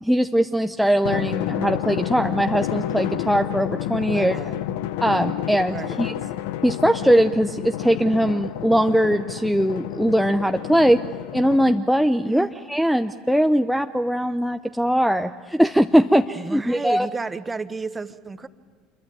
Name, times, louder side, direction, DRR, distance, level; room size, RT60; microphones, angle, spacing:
voice 1, 0.0-4.4 5.0-6.1 6.6-11.0 11.3-17.1, equal, ahead, 6 dB, 0.8 m, -20 dB
Drum, 1.0-12.0, left 12 dB, 65° left, 0.9 m, -30 dB
voice 2, 4.1-4.6 5.7-6.0 12.2-12.5 16.3-18.5, right 4 dB, 20° right, 12 dB, 1.3 m, -32 dB
27.0 x 22.5 x 9.2 m, 1.5 s
figure-of-eight pair, 70°, 0 cm